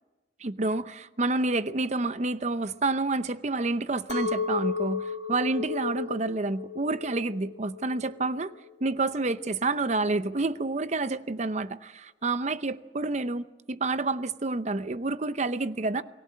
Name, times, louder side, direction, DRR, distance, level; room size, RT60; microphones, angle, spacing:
voice 1, 0.4-8.5 8.8-16.0, right 3 dB, 40° right, 0.7 m, -29 dB
Chink clink, 4.1-9.3, left 6 dB, 70° left, 1.3 m, -34 dB
29.0 x 19.5 x 7.6 m
head